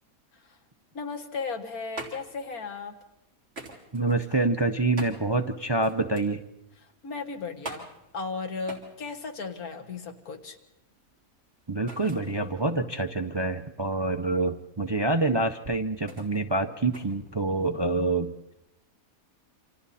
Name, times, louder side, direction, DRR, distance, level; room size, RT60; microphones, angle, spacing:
voice 1, 0.9-2.9 6.8-7.9 8.1-10.6 17.6-17.8, left 4 dB, 80° left, 6 dB, 2.2 m, -36 dB
sound 1, 1.5-18.0, right 2 dB, 45° right, 3.8 m, -46 dB
voice 2, 3.9-6.4 11.7-18.3, right 2 dB, 25° right, 8 dB, 0.6 m, -26 dB
28.5 x 26.5 x 4.2 m, 0.86 s
omnidirectional pair, 1.5 m